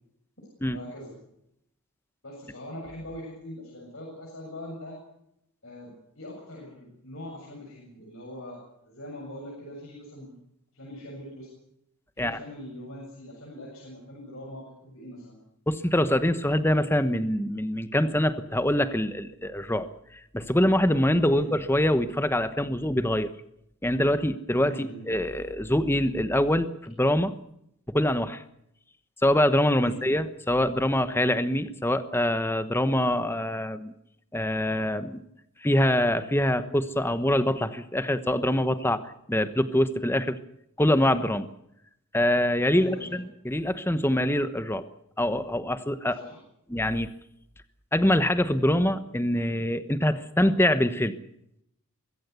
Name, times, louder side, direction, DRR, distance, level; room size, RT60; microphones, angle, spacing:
voice 1, 0.7-1.1 2.2-5.0 5.6-10.4 10.7-11.5 12.2-15.4 21.2-21.5 24.6-25.0 29.8-30.0 42.7-43.2 46.2-46.4, left 1 dB, 65° left, -2 dB, 7.2 m, -42 dB
voice 2, 15.7-19.9 20.3-23.3 23.8-27.3 27.9-28.4 29.2-33.9 34.3-35.2 35.6-40.4 40.8-41.5 42.1-44.9 45.2-46.2 46.7-47.1 47.9-51.2, left 1 dB, 10° left, 11 dB, 1.1 m, -24 dB
23.0 x 16.5 x 8.1 m, 0.78 s
head